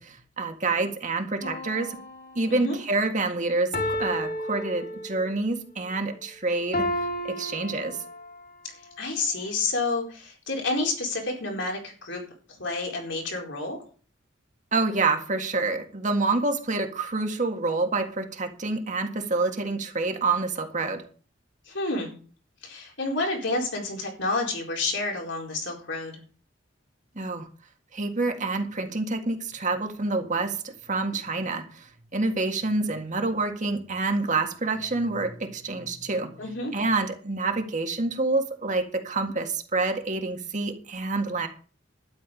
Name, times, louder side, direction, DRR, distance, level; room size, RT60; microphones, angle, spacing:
voice 1, 0.0-2.0 2.4-8.0 14.7-21.0 27.2-27.5 27.9-36.3 36.7-41.5, right 3 dB, 40° right, 5 dB, 1.9 m, -27 dB
sound 1, 1.4-2.7 3.7-5.4 6.7-8.4 9.1-9.2, left 1 dB, 50° left, 2.2 m, -32 dB
voice 2, 9.0-12.2 12.6-13.8 21.7-22.1 22.6-26.2 36.4-36.7, left 2 dB, 65° left, 1 dB, 4.4 m, -29 dB
12.5 x 10.5 x 5.3 m, 0.40 s
head